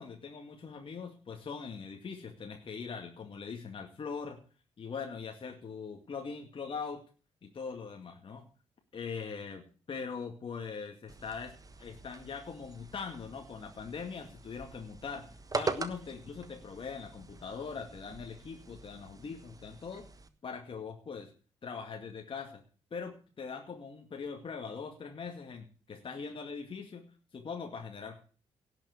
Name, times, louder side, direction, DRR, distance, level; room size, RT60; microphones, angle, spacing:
voice 1, 0.0-4.4 4.8-7.0 7.4-8.5 8.9-20.1 20.4-21.3 21.6-22.6 22.9-27.1 27.3-28.2, left 5 dB, 40° left, 2 dB, 2.2 m, -41 dB
sound 1, 11.1-20.3, right 4 dB, 25° right, 1.3 m, -43 dB
17.5 x 6.0 x 8.2 m, 0.39 s
figure-of-eight pair, 40°, 14 cm